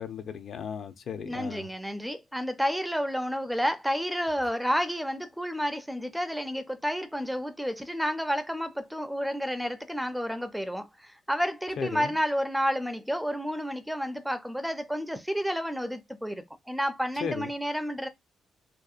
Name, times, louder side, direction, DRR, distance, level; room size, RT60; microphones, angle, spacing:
voice 1, 0.0-1.7 11.8-12.1 17.2-17.5, left 7 dB, 60° left, 0.4 m, -35 dB
voice 2, 1.2-18.1, equal, ahead, 0.4 m, -30 dB
2.7 x 2.2 x 2.3 m
cardioid pair, 90°, 0 cm